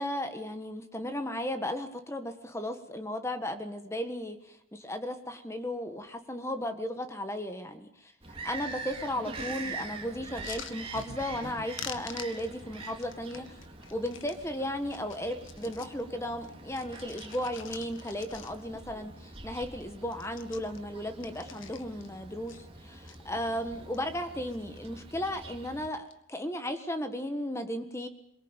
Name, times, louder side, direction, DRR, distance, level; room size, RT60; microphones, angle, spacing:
voice 1, 0.0-8.1 8.4-13.6 13.9-28.1, left 1 dB, 15° left, 8 dB, 1.5 m, -35 dB
Bird vocalization bird call bird song, 8.2-25.9, right 3 dB, 25° right, 2.7 m, -45 dB
sound 1, 10.4-11.5 11.8-14.4 14.8-16.0 16.4-18.8 19.2-19.3 19.5-19.8 20.1-22.1 22.5-23.2 23.7-24.2 24.5-25.0 25.9-26.2, left 8 dB, 70° left, 1.6 m, -47 dB
sound 2, 10.9-12.1, right 2 dB, 65° right, 1.0 m, -45 dB
23.5 x 22.0 x 9.0 m, 0.73 s
head